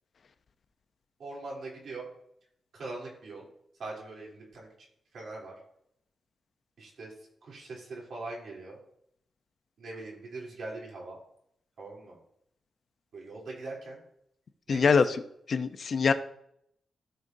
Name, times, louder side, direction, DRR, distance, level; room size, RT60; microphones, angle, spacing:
voice 1, 1.2-2.1 2.7-3.5 3.8-4.7 5.1-5.5 6.8-7.1 7.4-8.8 9.8-11.2 11.8-12.2 13.1-14.0 14.7-14.9, right 2 dB, 70° right, -3 dB, 3.4 m, -41 dB
voice 2, 14.7-15.2 15.5-16.1, left 5 dB, 55° left, 9 dB, 0.7 m, -23 dB
15.5 x 5.2 x 2.8 m, 0.72 s
cardioid pair, 100°, 0 cm